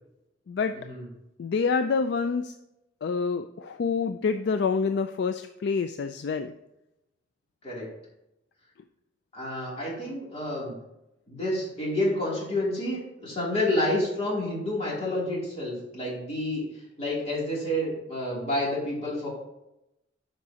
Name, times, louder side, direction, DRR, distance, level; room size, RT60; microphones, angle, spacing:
voice 1, 0.7-1.1 7.6-7.9 9.3-10.8 11.3-19.3, left 1 dB, 35° left, -5 dB, 2.9 m, -29 dB
voice 2, 1.4-2.5 3.0-6.5, left 5 dB, 60° left, 8 dB, 0.3 m, -27 dB
11.5 x 5.2 x 2.8 m, 0.88 s
head